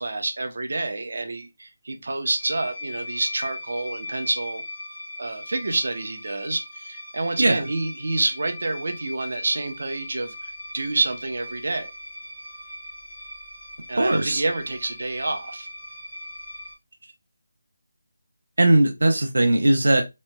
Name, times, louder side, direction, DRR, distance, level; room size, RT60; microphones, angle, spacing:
voice 1, 0.0-4.6 5.2-11.9 13.9-15.7, right 2 dB, 60° right, 0.8 m, -28 dB
sound 1, 2.4-16.7, left 1 dB, 25° left, 0.9 m, -39 dB
voice 2, 14.0-14.4 18.6-20.0, right 1 dB, 90° right, 0.5 m, -19 dB
3.2 x 3.0 x 2.2 m
figure-of-eight pair, 170°, 0 cm